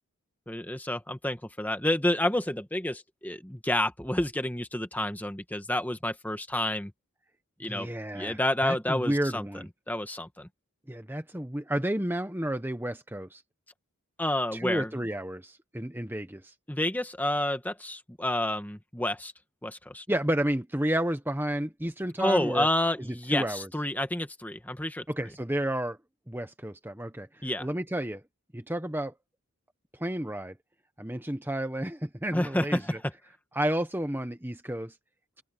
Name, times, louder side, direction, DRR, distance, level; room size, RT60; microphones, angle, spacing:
voice 1, 0.5-6.9 7.6-7.9 8.1-9.5 9.9-10.5 14.2-14.9 16.7-19.3 19.6-20.0 22.2-25.0 27.4-27.7 32.3-33.1, left 1 dB, 5° left, 1.4 m, -29 dB
voice 2, 7.6-9.7 10.9-13.4 14.5-16.4 20.1-22.7 23.1-23.7 25.1-26.0 26.3-28.2 28.5-29.1 30.0-30.5 31.0-33.0 33.5-34.9, right 1 dB, 10° right, 1.2 m, -31 dB
open air
head